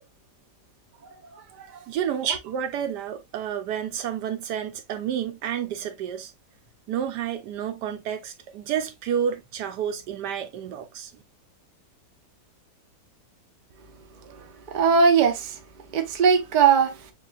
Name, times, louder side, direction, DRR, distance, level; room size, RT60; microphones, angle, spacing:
voice 1, 1.9-6.3 6.9-11.1, right 9 dB, 80° right, 1.2 m, -30 dB
voice 2, 14.7-15.6 15.9-17.0, right 6 dB, 45° right, 0.6 m, -20 dB
6.6 x 2.5 x 2.3 m
omnidirectional pair, 1.8 m